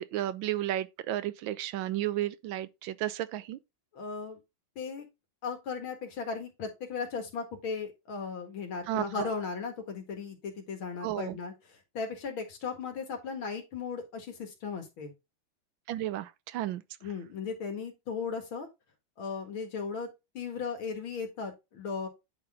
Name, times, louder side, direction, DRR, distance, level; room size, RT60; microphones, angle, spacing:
voice 1, 0.0-3.6 8.9-9.3 11.0-11.4 15.9-16.8, right 13 dB, 75° right, 1.4 m, -33 dB
voice 2, 3.9-4.4 4.8-5.1 5.4-15.1 17.0-18.7 19.2-20.1 20.3-22.1, left 5 dB, 90° left, 2.6 m, -36 dB
9.8 x 4.1 x 3.6 m
omnidirectional pair, 2.2 m